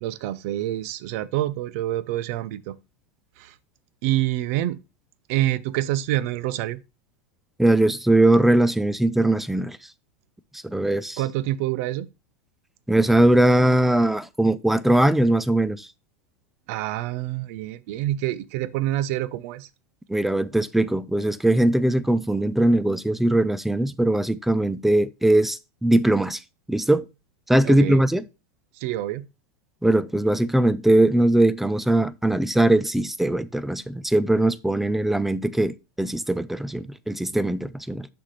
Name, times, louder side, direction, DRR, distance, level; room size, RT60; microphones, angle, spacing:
voice 1, 0.0-2.8 3.4-3.5 4.0-4.8 5.3-6.8 11.2-12.1 16.7-19.7 27.6-28.0 28.8-29.3, right 14 dB, 60° right, 0.6 m, -27 dB
voice 2, 7.6-9.8 10.6-11.2 12.9-15.9 20.1-26.4 26.7-27.0 27.5-28.2 29.8-38.1, right 1 dB, 5° right, 0.3 m, -20 dB
6.5 x 5.8 x 3.2 m
supercardioid pair, 130°, 8 cm